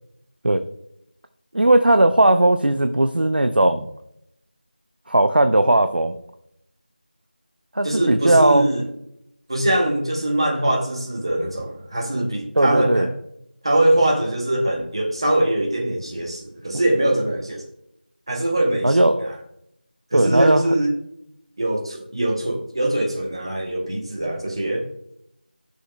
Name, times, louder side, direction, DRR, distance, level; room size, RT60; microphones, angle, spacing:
voice 1, 1.5-3.9 5.1-6.1 7.7-8.7 12.6-13.1 18.8-19.4 20.1-20.6, right 1 dB, 75° right, 0.6 m, -17 dB
voice 2, 7.8-8.8 9.5-13.1 13.6-17.6 18.3-19.0 20.1-20.9 21.6-24.9, right 1 dB, 30° right, 1.0 m, -22 dB
13.0 x 6.4 x 2.2 m
figure-of-eight pair, 175°, 5 cm